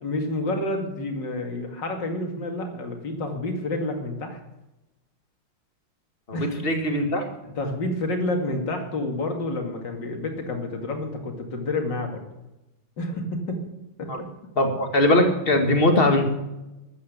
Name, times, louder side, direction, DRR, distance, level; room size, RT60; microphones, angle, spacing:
voice 1, 0.0-4.4 6.3-6.7 7.4-12.2 13.0-13.6 14.0-14.1, left 2 dB, 60° left, 3 dB, 2.9 m, -29 dB
voice 2, 6.6-7.2 14.1-14.2 14.6-16.2, left 1 dB, 30° left, 5 dB, 2.0 m, -20 dB
13.5 x 8.7 x 8.1 m, 0.96 s
omnidirectional pair, 2.2 m